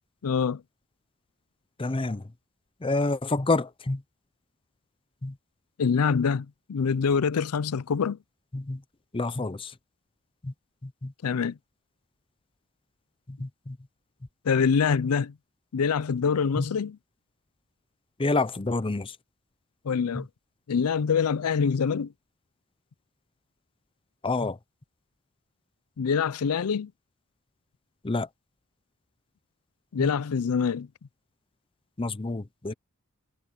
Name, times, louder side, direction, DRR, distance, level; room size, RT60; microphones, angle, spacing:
voice 1, 0.2-0.6 5.8-8.2 11.2-11.5 14.5-15.3 15.7-17.0 19.9-20.2 20.7-22.1 26.0-26.9 29.9-30.9, left 6 dB, 85° left, 0.5 m, -25 dB
voice 2, 1.8-2.2 2.8-4.0 5.2-5.3 8.5-8.8 9.1-9.7 10.4-10.5 10.8-11.1 13.4-13.8 16.6-16.7 18.2-19.1 20.1-20.2 24.2-24.6 28.0-28.3 30.0-30.1 32.0-32.7, left 3 dB, 25° left, 0.7 m, -28 dB
head